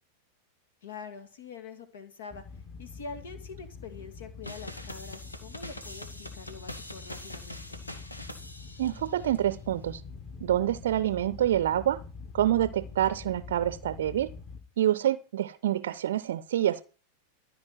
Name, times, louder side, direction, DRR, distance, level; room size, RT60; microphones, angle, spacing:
voice 1, 0.8-2.4 2.8-7.8, left 5 dB, 60° left, 2.2 m, -44 dB
sound 1, 2.3-14.6, left 4 dB, 20° left, 2.0 m, -45 dB
sound 2, 4.4-9.4, left 1 dB, 80° left, 2.0 m, -44 dB
voice 2, 8.8-10.0 10.4-12.0 12.3-14.3 14.8-16.8, right 12 dB, 60° right, 0.6 m, -27 dB
15.0 x 5.1 x 8.9 m
figure-of-eight pair, 90°, 0 cm